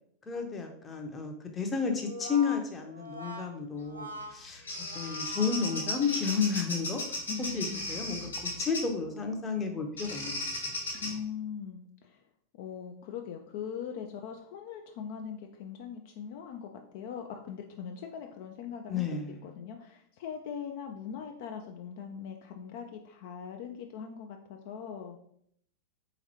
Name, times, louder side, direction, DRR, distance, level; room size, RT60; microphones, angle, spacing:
voice 1, 0.3-4.6 4.9-7.2 7.5-10.7 18.9-19.4, left 5 dB, 20° left, 4 dB, 0.6 m, -32 dB
Brass instrument, 1.9-6.5, left 1 dB, 80° right, 0.6 m, -44 dB
Bird vocalization bird call bird song, 4.2-9.0 10.0-11.1, left 2 dB, 75° left, 0.9 m, -36 dB
voice 2, 7.3-7.9 10.9-12.2 12.5-19.1 19.4-25.2, left 7 dB, 50° left, 4 dB, 0.3 m, -41 dB
3.8 x 2.9 x 2.9 m, 0.69 s
figure-of-eight pair, 90°, 0 cm